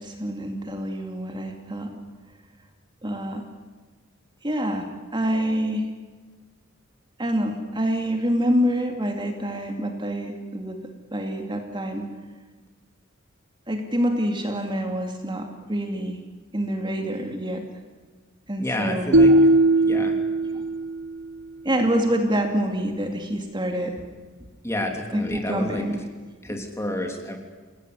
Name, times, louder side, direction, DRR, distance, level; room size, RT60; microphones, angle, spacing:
voice 1, 0.0-1.9 3.0-3.5 4.4-4.9 5.1-5.9 7.2-10.8 11.1-12.1 13.7-16.2 16.5-17.6 18.5-19.5 20.5-20.6 21.6-23.9 25.1-26.0 26.5-26.6, equal, 25° right, 4 dB, 2.5 m, -26 dB
voice 2, 18.6-19.3 19.8-20.2 24.6-25.8 26.4-27.4, left 1 dB, 15° left, 3 dB, 3.3 m, -29 dB
sound 1, 19.1-21.3, right 1 dB, 65° right, 1.0 m, -18 dB
29.0 x 17.5 x 9.7 m, 1.4 s
head